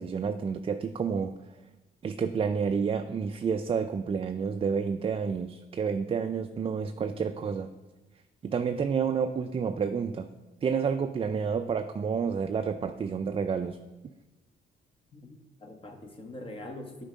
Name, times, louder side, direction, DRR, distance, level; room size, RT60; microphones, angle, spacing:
voice 1, 0.0-1.3 2.0-7.7 8.4-10.3 10.6-13.8, right 6 dB, 30° right, 8 dB, 0.3 m, -29 dB
voice 2, 15.1-17.0, left 1 dB, 25° left, 4 dB, 1.1 m, -43 dB
8.9 x 4.5 x 5.1 m, 1.1 s
cardioid pair, 90°, 20 cm